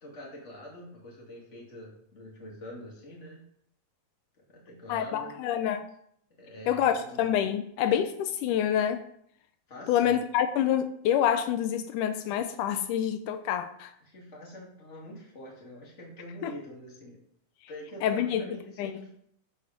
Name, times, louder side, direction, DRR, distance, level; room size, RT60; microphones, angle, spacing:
voice 1, 0.0-3.4 4.5-5.4 6.4-7.3 9.7-10.1 14.0-17.2 17.7-19.2, equal, 25° left, -3 dB, 2.5 m, -45 dB
voice 2, 4.9-5.8 6.7-9.0 9.9-13.9 16.4-16.5 18.0-18.4 18.8-18.9, left 9 dB, 85° left, 9 dB, 2.1 m, -27 dB
11.0 x 5.2 x 5.2 m, 0.69 s
omnidirectional pair, 3.6 m